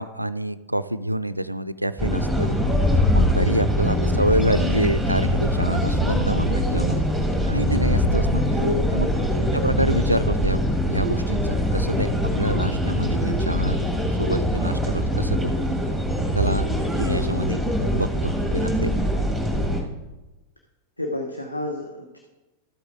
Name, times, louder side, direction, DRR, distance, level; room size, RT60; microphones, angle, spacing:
voice 1, 0.0-2.5 3.1-7.0 7.5-8.4 8.9-9.1 9.5-13.8 14.1-15.5 16.3-16.7 17.0-17.6 17.9-19.0, right 1 dB, 85° right, 14 dB, 0.3 m, -27 dB
sound 1, 2.0-19.8, equal, 5° left, 1.9 m, -23 dB
sound 2, 2.5-8.1, left 3 dB, 35° left, 3.9 m, -26 dB
voice 2, 3.9-4.2 8.5-8.8 9.4-9.8 21.0-22.2, left 2 dB, 85° left, 2 dB, 0.9 m, -30 dB
12.5 x 8.0 x 3.7 m, 1.1 s
figure-of-eight pair, 90°, 0 cm